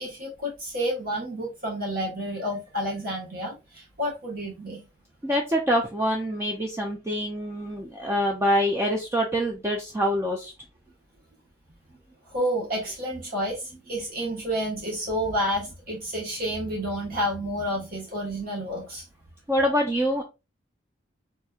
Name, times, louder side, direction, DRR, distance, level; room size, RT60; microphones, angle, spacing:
voice 1, 0.0-4.8 12.2-19.0, equal, 55° right, 1.3 m, -30 dB
voice 2, 5.2-10.5 19.5-20.2, equal, 15° right, 0.4 m, -25 dB
3.5 x 3.0 x 2.4 m
head